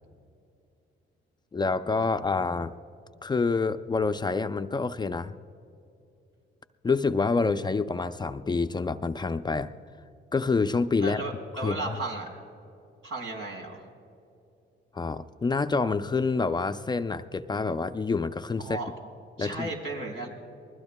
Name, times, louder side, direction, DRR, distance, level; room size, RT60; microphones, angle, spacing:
voice 1, 1.5-2.7 3.2-5.3 6.8-9.7 10.3-11.2 11.6-12.0 14.9-18.8 19.4-19.7, left 4 dB, 20° left, 9 dB, 0.5 m, -27 dB
voice 2, 11.0-12.3 13.0-13.8 18.6-18.9 19.4-20.3, right 2 dB, 85° right, 0 dB, 4.3 m, -34 dB
28.5 x 20.5 x 2.2 m, 2.7 s
cardioid pair, 90°, 20 cm